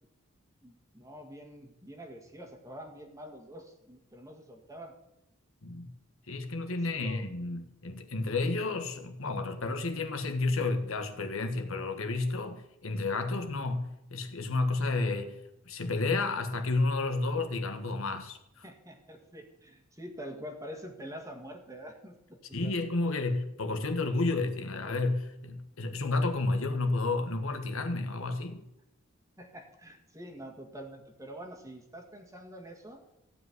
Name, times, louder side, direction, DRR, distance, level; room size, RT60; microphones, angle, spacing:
voice 1, 0.6-5.0 6.7-7.3 18.6-22.7 29.4-33.0, equal, 15° right, 2 dB, 1.8 m, -46 dB
voice 2, 6.3-15.4 15.6-18.6 22.5-28.6, left 3 dB, 70° left, 6 dB, 1.5 m, -31 dB
15.0 x 5.4 x 9.6 m, 0.86 s
head